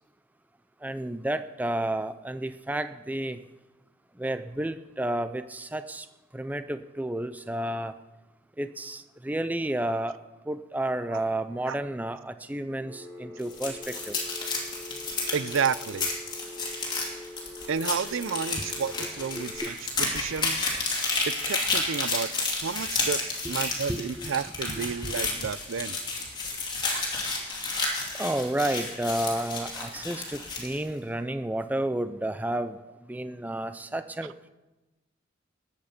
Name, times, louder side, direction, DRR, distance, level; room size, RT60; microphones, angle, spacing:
voice 1, 0.8-3.4 4.2-6.0 6.3-7.9 8.6-10.1 10.5-14.2 18.6-18.7 19.6-19.7 23.9-24.3 24.7-25.2 28.2-32.8 33.1-34.3, right 1 dB, 10° right, 0.4 m, -31 dB
Telephone, 12.8-19.6, left 1 dB, 25° right, 4.7 m, -44 dB
sound 1, 13.4-30.8, left 3 dB, 20° left, 2.6 m, -31 dB
voice 2, 15.3-16.1 17.7-20.6 21.3-22.3 22.6-26.0 26.9-27.0, right 6 dB, 80° right, 0.5 m, -31 dB
19.5 x 8.2 x 5.1 m
head